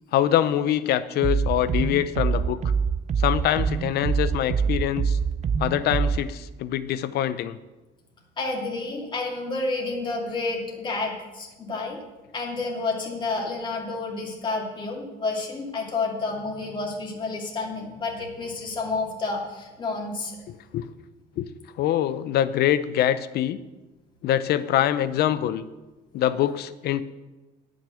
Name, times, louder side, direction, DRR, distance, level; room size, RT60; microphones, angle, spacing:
voice 1, 0.1-2.6 3.2-5.2 5.6-7.6 20.5-20.9 21.4-21.5 21.8-23.6 24.2-25.6 26.1-27.0, left 11 dB, 70° left, 14 dB, 0.7 m, -24 dB
sound 1, 1.2-6.2, right 6 dB, 40° right, 0.6 m, -25 dB
voice 2, 8.4-12.0 12.3-20.4, left 3 dB, 30° left, -2 dB, 2.6 m, -30 dB
10.0 x 6.5 x 7.7 m, 1.1 s
cardioid pair, 110°, 17 cm